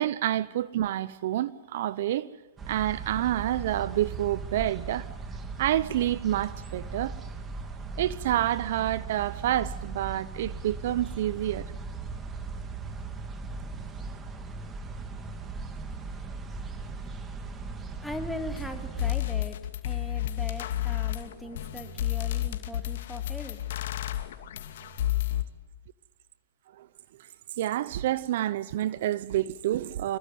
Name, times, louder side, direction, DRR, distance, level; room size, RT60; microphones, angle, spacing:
voice 1, 0.0-2.3 2.7-5.1 5.6-7.1 8.0-11.7 26.8-26.9 27.6-30.2, right 13 dB, 60° right, 0.9 m, -28 dB
sound 1, 2.6-19.1, right 4 dB, 20° right, 2.8 m, -38 dB
voice 2, 13.4-13.8 18.0-19.6 19.8-23.6, left 1 dB, ahead, 3.3 m, -40 dB
sound 2, 18.6-18.7 19.0-25.4, left 14 dB, 65° left, 2.5 m, -31 dB
26.5 x 22.0 x 9.4 m
hypercardioid pair, 125°, 0 cm